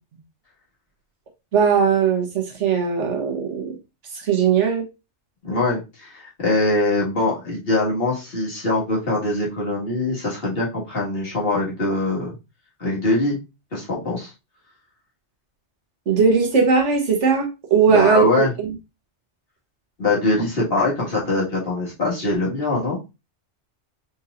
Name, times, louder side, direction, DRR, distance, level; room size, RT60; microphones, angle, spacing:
voice 1, 1.5-3.7 4.1-4.8 16.1-18.7, right 6 dB, 80° right, 2 dB, 1.5 m, -19 dB
voice 2, 5.4-12.3 12.8-13.4 13.7-14.3 17.9-18.5 20.0-23.0, left 2 dB, 55° left, -6 dB, 2.1 m, -22 dB
4.5 x 4.2 x 2.5 m, 0.26 s
omnidirectional pair, 1.2 m